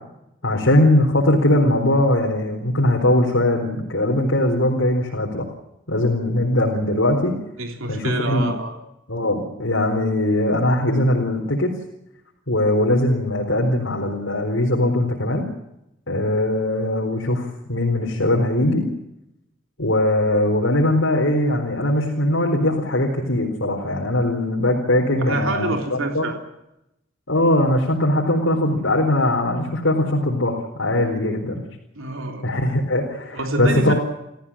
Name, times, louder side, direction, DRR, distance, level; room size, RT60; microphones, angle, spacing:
voice 1, 0.4-5.5 5.9-7.3 7.9-8.5 9.1-11.7 12.5-15.5 16.1-18.8 19.8-26.3 27.3-31.6 32.4-33.9, left 1 dB, 75° left, 0 dB, 4.2 m, -20 dB
voice 2, 7.6-8.8 25.2-26.4 32.0-32.4 33.3-33.9, right 2 dB, 85° right, 4 dB, 3.5 m, -26 dB
29.0 x 15.0 x 8.6 m, 0.85 s
head